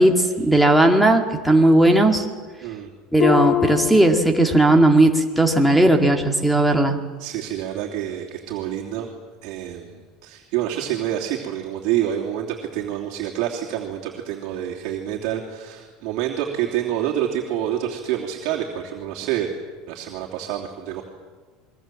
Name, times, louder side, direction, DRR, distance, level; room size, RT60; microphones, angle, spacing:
voice 1, 0.0-2.2 3.1-7.0, right 1 dB, ahead, 1 dB, 2.2 m, -16 dB
Harp, 3.2-5.0 5.3-5.7 6.3-6.4, left 13 dB, 45° left, 1.6 m, -25 dB
voice 2, 7.2-9.1 9.4-19.5 19.9-21.0, right 11 dB, 60° right, -2 dB, 3.0 m, -27 dB
28.0 x 22.0 x 7.7 m, 1.4 s
cardioid pair, 155°, 0 cm